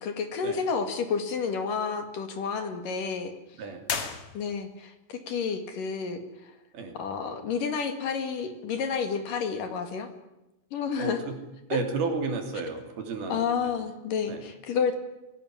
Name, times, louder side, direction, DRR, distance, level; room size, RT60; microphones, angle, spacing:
voice 1, 0.0-3.3 4.3-4.9 5.3-6.5 7.0-10.1 10.7-11.2 13.3-14.9, left 6 dB, 60° left, 7 dB, 3.5 m, -30 dB
sound 1, 3.8-4.9, left 6 dB, 45° left, 2.4 m, -34 dB
voice 2, 11.0-11.4 11.7-13.7 14.3-14.4, right 4 dB, 70° right, 4 dB, 5.0 m, -32 dB
23.5 x 17.5 x 10.0 m, 0.97 s
omnidirectional pair, 4.6 m